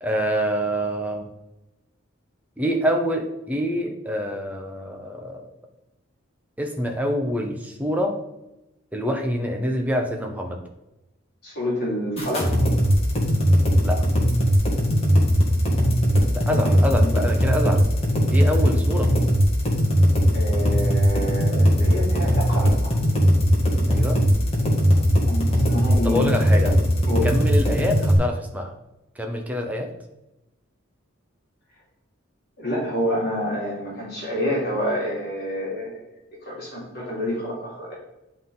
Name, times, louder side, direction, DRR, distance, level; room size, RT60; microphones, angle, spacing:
voice 1, 0.0-1.3 2.6-5.5 6.6-8.2 8.9-10.6 13.8-14.1 16.3-17.9 18.3-19.1 23.9-24.2 26.0-26.8 27.2-28.7 29.2-29.9, equal, 10° right, 2 dB, 0.9 m, -26 dB
voice 2, 11.4-12.5 16.5-17.1 20.3-22.9 24.9-25.0 25.3-26.3 27.1-27.3 32.6-36.0 36.4-37.9, equal, 50° left, -5 dB, 2.8 m, -28 dB
sound 1, 12.2-28.2, equal, 30° left, 1.8 m, -19 dB
11.0 x 3.7 x 3.9 m, 0.92 s
head